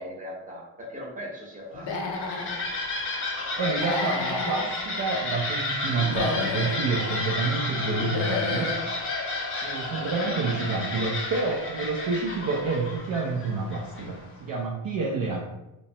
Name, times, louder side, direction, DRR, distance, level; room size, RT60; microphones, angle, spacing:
voice 1, 0.0-2.3 10.0-10.4, equal, 15° right, -3 dB, 0.8 m, -39 dB
Human voice / Animal, 1.7-2.6 3.7-4.7 6.0-6.8 7.9-8.8, left 4 dB, 70° left, 0.6 m, -31 dB
sound 1, 1.8-14.3, left 2 dB, 30° left, 0.6 m, -32 dB
voice 2, 3.6-8.8 9.6-15.5, right 3 dB, 50° right, -1 dB, 0.4 m, -28 dB
2.9 x 2.1 x 2.7 m, 0.96 s
cardioid pair, 100°, 46 cm